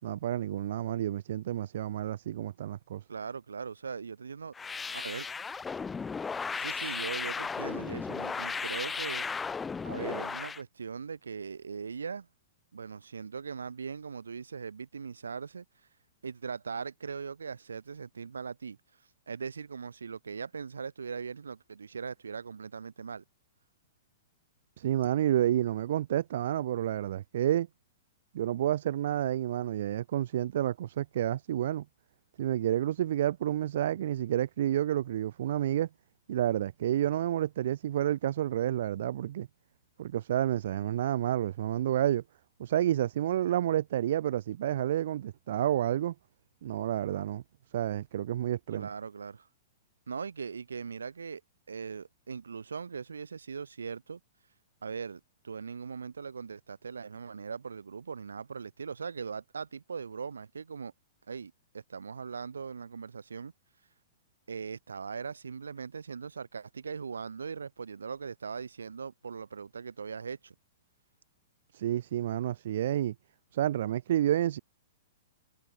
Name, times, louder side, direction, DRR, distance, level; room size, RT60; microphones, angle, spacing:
voice 1, 0.0-3.0 24.8-27.7 28.3-31.8 32.4-35.9 36.3-39.5 40.0-42.2 42.6-46.1 46.6-47.4 47.7-48.9 71.7-73.1 73.5-74.6, right 12 dB, 65° right, 3.8 m, -29 dB
voice 2, 3.1-4.5 4.9-5.3 6.6-9.3 9.8-12.3 12.7-15.6 16.2-18.8 19.3-23.2 48.7-49.5 50.1-51.4 51.7-54.2 54.8-60.9 61.3-63.5 64.5-70.5, right 5 dB, 85° right, 7.3 m, -40 dB
sound 1, 4.5-10.6, left 5 dB, 15° left, 1.0 m, -35 dB
hypercardioid pair, 120°, 0 cm